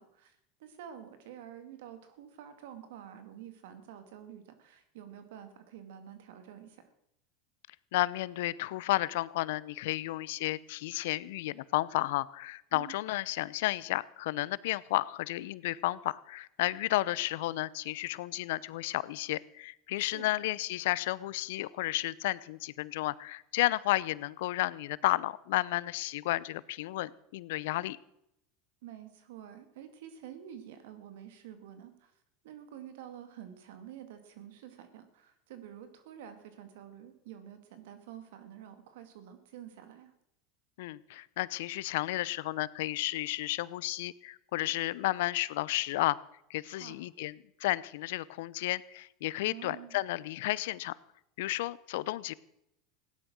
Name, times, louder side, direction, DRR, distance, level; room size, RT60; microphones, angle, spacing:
voice 1, 0.0-6.8 12.7-13.0 20.0-20.2 28.8-32.1 32.4-40.1 46.6-47.0 49.5-50.0, right 10 dB, 75° right, 9 dB, 2.3 m, -49 dB
voice 2, 7.9-28.0 40.8-46.2 46.5-50.9 51.4-52.3, left 17 dB, 75° left, 20 dB, 0.6 m, -32 dB
16.5 x 10.5 x 6.3 m, 0.80 s
hypercardioid pair, 100°, 0 cm